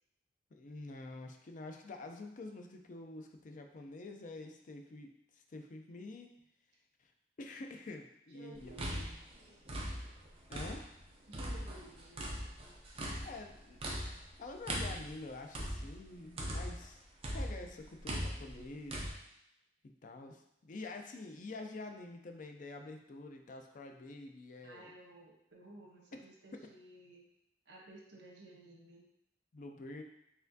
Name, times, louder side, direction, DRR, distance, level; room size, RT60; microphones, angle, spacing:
voice 1, 0.5-6.3 7.0-7.1 7.4-8.7 10.5-11.0 13.2-13.8 14.4-17.0 17.3-19.1 19.8-24.9 29.5-30.0, left 2 dB, 50° left, 4 dB, 0.4 m, -47 dB
voice 2, 8.3-9.2 11.3-12.4 24.6-27.3 27.7-29.1, right 1 dB, 85° right, -1 dB, 1.0 m, -55 dB
sound 1, 8.6-11.0 11.3-16.9 17.2-19.1, equal, 35° right, 0.7 m, -40 dB
4.2 x 3.4 x 2.7 m, 0.79 s
head